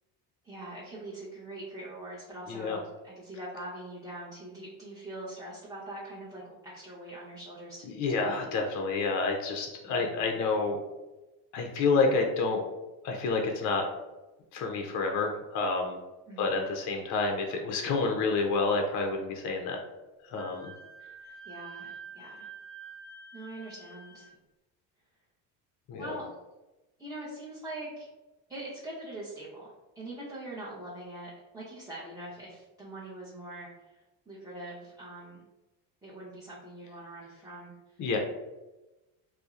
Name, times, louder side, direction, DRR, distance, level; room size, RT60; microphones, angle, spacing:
voice 1, 0.4-8.3 9.8-10.4 16.3-16.7 21.0-22.5 23.3-24.3 26.0-26.2 27.0-28.1 28.5-35.4 36.0-38.1, right 1 dB, 5° right, -9 dB, 0.5 m, -43 dB
voice 2, 2.5-2.8 7.9-10.8 11.5-12.6 13.0-13.8 14.5-16.0 16.4-19.8 20.2-20.7 25.9-26.2 38.0-38.2, left 4 dB, 40° left, 2 dB, 0.4 m, -29 dB
Wind instrument woodwind instrument, 20.3-24.3, right 5 dB, 70° right, 1.0 m, -47 dB
2.6 x 2.0 x 2.3 m, 1.1 s
supercardioid pair, 95°, 47 cm